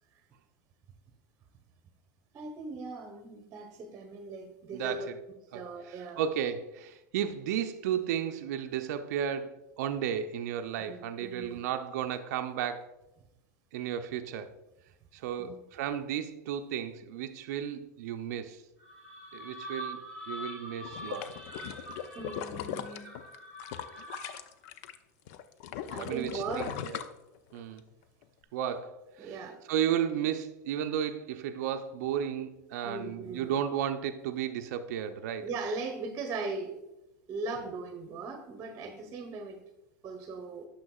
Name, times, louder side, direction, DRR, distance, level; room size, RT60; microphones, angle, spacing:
voice 1, 2.3-5.1 5.5-6.2 10.9-11.6 15.4-15.6 22.1-23.1 25.9-26.8 29.2-29.6 32.8-33.6 35.4-36.8 37.3-39.6 40.0-40.7, right 3 dB, 35° right, 0.9 m, -39 dB
voice 2, 4.7-5.2 5.5-12.9 13.7-14.5 15.1-18.6 19.3-21.4 26.0-27.0 27.5-27.8 28.5-29.4 29.7-35.5, right 9 dB, 65° right, 0.5 m, -34 dB
sound 1, 18.8-24.5, equal, 10° left, 2.4 m, -44 dB
sound 2, 20.8-25.0 25.3-27.8 28.2-28.3, left 10 dB, 60° left, 0.5 m, -39 dB
9.6 x 6.3 x 2.3 m
hypercardioid pair, 90°, 9 cm